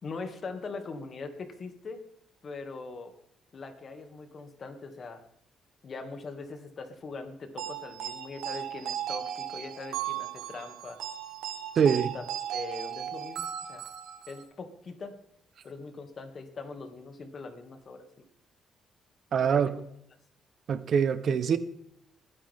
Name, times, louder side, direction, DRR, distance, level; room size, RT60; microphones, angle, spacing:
voice 1, 0.0-2.0 2.4-3.1 3.5-5.2 5.8-11.0 11.8-12.2 12.5-13.9 14.3-15.2 15.6-18.1 19.4-19.6, left 4 dB, 45° left, 6 dB, 2.3 m, -41 dB
sound 1, 7.6-14.4, right 10 dB, 85° right, 1.4 m, -36 dB
voice 2, 11.8-12.1 19.3-19.7 20.7-21.6, right 7 dB, 60° right, 13 dB, 1.0 m, -24 dB
20.5 x 10.0 x 3.7 m, 0.75 s
cardioid pair, 90°, 0 cm